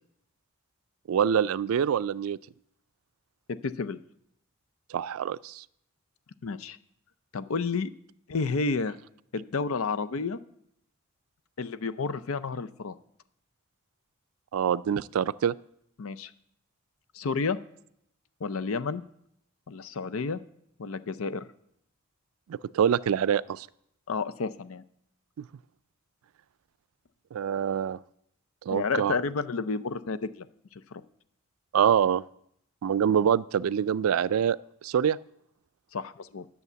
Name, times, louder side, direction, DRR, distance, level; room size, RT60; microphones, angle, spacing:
voice 1, 1.1-2.4 4.9-5.6 14.5-15.5 22.5-23.7 25.4-25.5 27.3-28.0 28.7-29.2 31.7-32.2 32.8-34.6 34.8-35.2, right 8 dB, 90° right, 18 dB, 0.3 m, -25 dB
voice 2, 3.5-4.0 6.4-6.8 7.3-7.9 8.3-9.0 9.3-10.4 11.6-13.0 16.0-16.3 17.1-17.6 18.4-19.0 19.7-20.4 20.8-21.4 24.1-24.8 28.7-30.5 30.9-31.0 35.9-36.5, left 4 dB, 80° left, 14 dB, 0.6 m, -31 dB
11.0 x 7.0 x 6.9 m, 0.73 s
head